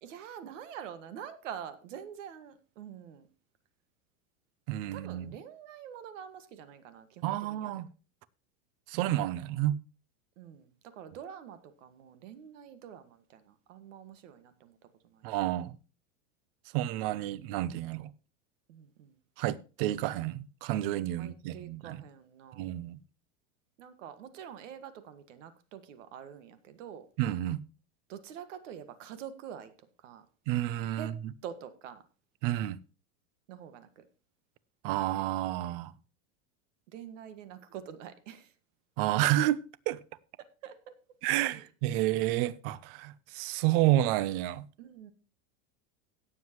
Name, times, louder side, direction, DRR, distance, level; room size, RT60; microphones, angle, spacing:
voice 1, 0.0-3.3 4.9-7.8 10.4-14.8 15.0-15.6 18.7-19.2 21.2-22.7 23.8-27.1 28.1-30.3 31.0-31.1 31.4-32.0 33.5-34.0 36.9-38.5 40.4-40.8 41.2-41.6 44.8-45.1, right 9 dB, 80° right, 1.8 m, -46 dB
voice 2, 4.7-5.3 7.2-7.9 8.9-9.8 15.2-15.7 16.7-18.1 19.4-22.0 22.6-23.0 27.2-27.6 30.5-31.1 32.4-32.8 34.8-35.9 39.0-40.0 41.2-44.7, right 14 dB, 50° right, 0.7 m, -30 dB
17.5 x 7.6 x 3.0 m
supercardioid pair, 160°, 37 cm